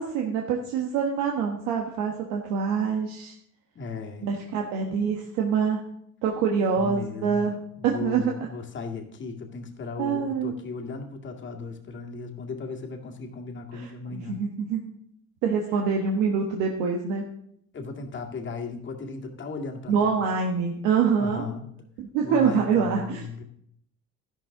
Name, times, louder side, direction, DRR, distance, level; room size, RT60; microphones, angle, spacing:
voice 1, 0.0-3.3 4.2-5.8 6.2-7.6 7.8-8.5 10.0-10.5 13.7-14.8 15.4-17.3 19.9-21.4 22.1-23.4, right 6 dB, 90° right, 1 dB, 1.4 m, -25 dB
voice 2, 3.8-4.3 6.8-7.5 7.8-14.4 17.7-20.2 21.2-21.7 22.2-23.4, left 4 dB, 35° left, 2 dB, 1.9 m, -36 dB
12.5 x 11.5 x 3.8 m, 0.70 s
cardioid pair, 110°, 32 cm